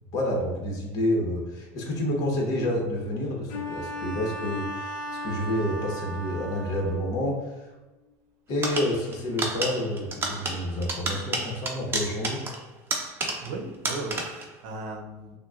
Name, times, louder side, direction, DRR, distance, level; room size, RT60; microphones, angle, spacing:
voice 1, 0.1-4.9 5.2-7.7 8.5-12.4, left 1 dB, 50° left, -1 dB, 1.1 m, -29 dB
Bowed string instrument, 3.5-7.2, left 1 dB, 70° left, 0.8 m, -36 dB
sound 1, 8.6-13.6 13.8-14.5, right 2 dB, 30° right, 0.7 m, -31 dB
voice 2, 13.4-15.4, right 2 dB, 65° right, 3 dB, 0.7 m, -36 dB
5.9 x 2.3 x 2.4 m, 1.1 s
supercardioid pair, 115°, 8 cm